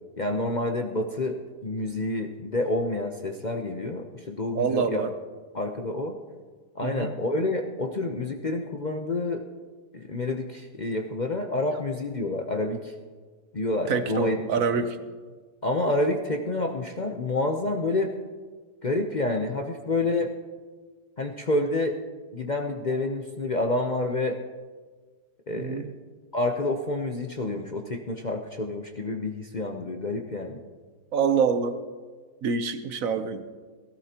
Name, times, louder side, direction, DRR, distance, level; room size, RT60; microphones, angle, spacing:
voice 1, 0.2-5.0 5.5-6.2 6.7-9.4 9.9-12.9 13.5-14.9 15.6-18.1 18.8-20.3 21.2-22.0 22.3-24.4 25.5-25.9 26.3-30.6, left 2 dB, 40° left, 3 dB, 0.6 m, -28 dB
voice 2, 4.5-5.1 6.8-7.1 13.9-15.0 25.5-25.9 31.1-31.8 32.4-33.6, right 6 dB, 60° right, 9 dB, 1.1 m, -26 dB
18.5 x 16.0 x 2.9 m, 1.4 s
omnidirectional pair, 1.8 m